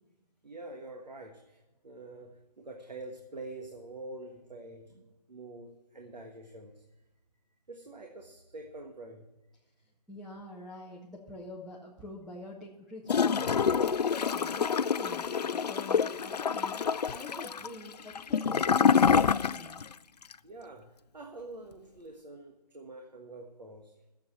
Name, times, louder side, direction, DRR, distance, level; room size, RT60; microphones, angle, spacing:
voice 1, 0.4-6.8 7.7-9.2 20.4-23.9, right 2 dB, 80° right, 3 dB, 1.6 m, -46 dB
voice 2, 10.1-16.8 17.1-19.8, left 1 dB, ahead, -7 dB, 0.7 m, -46 dB
Gurgling / Toilet flush, 13.1-19.9 20.2-20.3, left 6 dB, 75° left, 0.4 m, -27 dB
11.0 x 7.7 x 7.2 m, 1.1 s
figure-of-eight pair, 150°, 21 cm